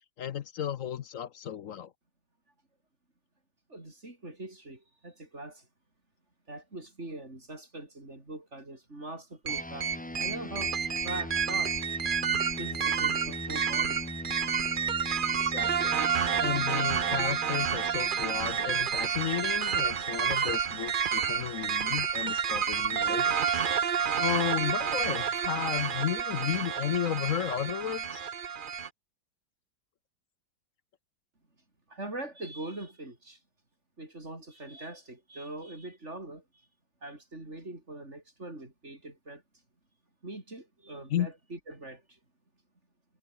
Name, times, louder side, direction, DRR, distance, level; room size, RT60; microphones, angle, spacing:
voice 1, 0.2-1.9 15.4-16.0 16.4-23.6 24.2-28.3 41.1-41.3, left 10 dB, 60° left, 0.8 m, -33 dB
voice 2, 3.7-5.7 6.5-11.8 12.6-14.0 31.9-33.4 34.0-36.7 37.0-39.4 40.2-42.2, right 2 dB, 35° right, 6.1 m, -42 dB
sound 1, 9.5-19.2, left 1 dB, 5° left, 0.7 m, -41 dB
sound 2, 9.5-28.9, right 7 dB, 65° right, 0.5 m, -29 dB
omnidirectional pair, 2.1 m